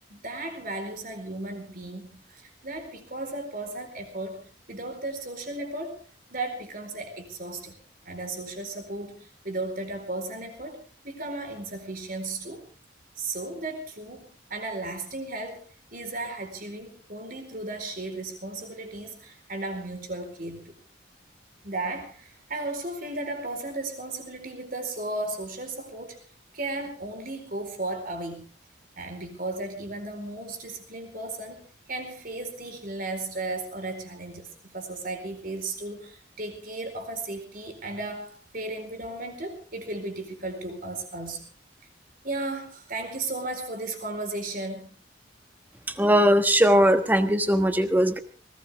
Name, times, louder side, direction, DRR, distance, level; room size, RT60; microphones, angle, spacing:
voice 1, 0.1-6.0 6.3-7.7 8.1-10.8 11.0-12.6 13.2-15.6 15.9-20.7 21.6-26.2 26.5-28.5 29.0-41.5 42.2-44.9, right 2 dB, 45° right, 6 dB, 4.2 m, -35 dB
voice 2, 46.0-48.2, equal, 10° right, 9 dB, 1.3 m, -20 dB
20.0 x 18.5 x 3.5 m, 0.38 s
head